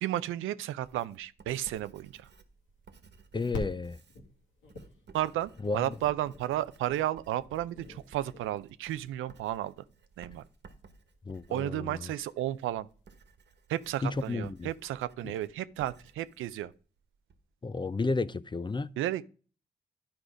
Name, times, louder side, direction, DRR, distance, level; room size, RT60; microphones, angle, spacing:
voice 1, 0.0-2.3 5.1-9.7 10.2-10.4 11.5-12.9 13.7-16.7 19.0-19.2, right 13 dB, 90° right, 0.5 m, -33 dB
Writing, 0.8-17.4, right 4 dB, 60° right, 1.3 m, -57 dB
sound 1, 2.1-13.1, left 3 dB, 90° left, 2.0 m, -48 dB
voice 2, 3.3-4.0 5.6-5.9 11.3-12.1 14.0-14.7 17.6-18.9, left 3 dB, 25° left, 0.5 m, -32 dB
10.5 x 4.9 x 4.9 m
supercardioid pair, 45°, 20 cm